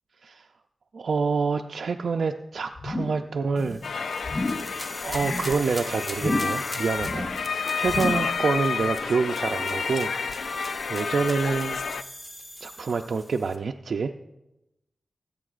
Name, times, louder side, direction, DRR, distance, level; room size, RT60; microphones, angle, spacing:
voice 1, 0.9-3.8 5.0-10.1 10.4-10.6 10.9-11.8 12.6-14.1, right 4 dB, 70° right, 5 dB, 0.4 m, -27 dB
sound 1, 2.8-3.3 3.5-3.9 4.2-4.7 5.1-5.5 6.1-6.7 6.9-7.5 7.8-8.4 8.7-8.8, left 2 dB, 35° left, 0.6 m, -31 dB
sound 2, 3.6-13.6, equal, 10° left, 1.0 m, -41 dB
sound 3, 3.8-12.0, left 5 dB, 80° left, 0.4 m, -30 dB
20.0 x 8.4 x 2.5 m, 0.94 s
wide cardioid pair, 110°, 0 cm